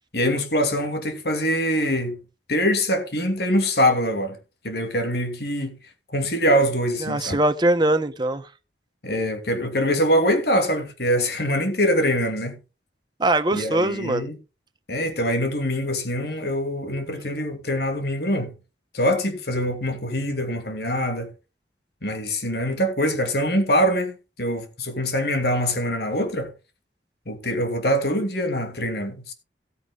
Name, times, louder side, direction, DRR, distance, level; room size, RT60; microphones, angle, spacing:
voice 1, 0.1-2.2 2.5-4.4 4.6-5.7 6.1-7.4 9.0-12.6 13.5-14.4 14.9-18.5 18.9-21.3 22.0-26.5 27.3-29.3, equal, 60° left, 2.6 m, -24 dB
voice 2, 7.0-8.5 13.2-14.3, right 1 dB, 25° right, 0.9 m, -22 dB
17.0 x 9.0 x 2.4 m
head